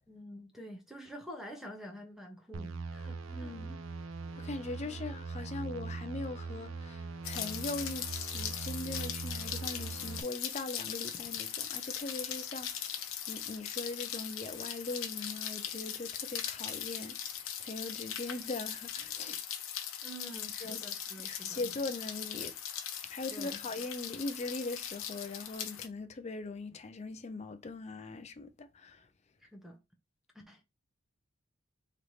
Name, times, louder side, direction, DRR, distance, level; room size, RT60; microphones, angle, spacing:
voice 1, 0.1-3.5 4.8-5.0 20.0-21.6 23.3-23.6 29.4-29.8 30.3-30.6, equal, ahead, 0.8 m, -48 dB
sound 1, 2.5-10.2, right 4 dB, 75° right, 0.6 m, -41 dB
voice 2, 3.3-3.8 4.3-19.4 20.6-20.8 21.2-22.5 23.0-29.1, left 3 dB, 30° left, 0.5 m, -41 dB
Rain, 7.2-25.9, left 9 dB, 85° left, 0.7 m, -40 dB
3.2 x 3.1 x 4.0 m
head